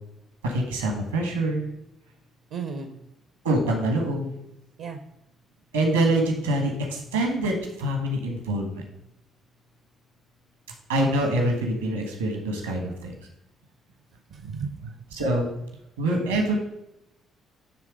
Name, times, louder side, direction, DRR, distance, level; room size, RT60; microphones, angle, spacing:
voice 1, 0.4-1.7 3.4-4.3 5.7-8.8 10.9-13.1 15.1-15.5 16.0-16.5, right 1 dB, 85° right, 2 dB, 1.5 m, -25 dB
voice 2, 2.5-3.0 4.8-5.0 14.3-14.9, right 5 dB, 70° right, 7 dB, 0.7 m, -34 dB
10.0 x 3.5 x 5.0 m, 0.84 s
figure-of-eight pair, 45°, 0 cm